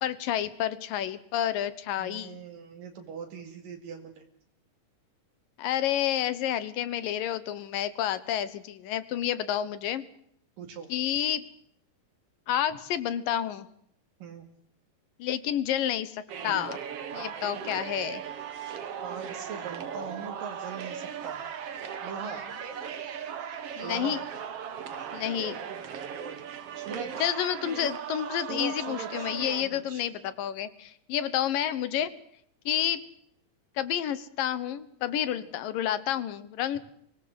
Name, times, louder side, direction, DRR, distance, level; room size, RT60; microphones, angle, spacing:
voice 1, 0.0-2.4 5.6-10.1 10.9-11.4 12.5-13.7 15.2-16.8 17.1-18.2 23.8-24.2 25.1-25.6 27.2-32.1 32.7-33.0 33.8-36.8, left 11 dB, 75° left, 15 dB, 2.9 m, -30 dB
voice 2, 2.0-4.3 10.6-10.9 14.2-14.5 19.0-21.4 22.0-22.5 23.8-24.2 26.7-27.4 28.3-30.1 32.7-32.9 35.4-35.5, right 6 dB, 75° right, 4 dB, 3.9 m, -41 dB
sound 1, 16.3-29.6, right 8 dB, 50° right, 2.2 m, -37 dB
24.5 x 18.5 x 7.8 m, 0.69 s
omnidirectional pair, 4.0 m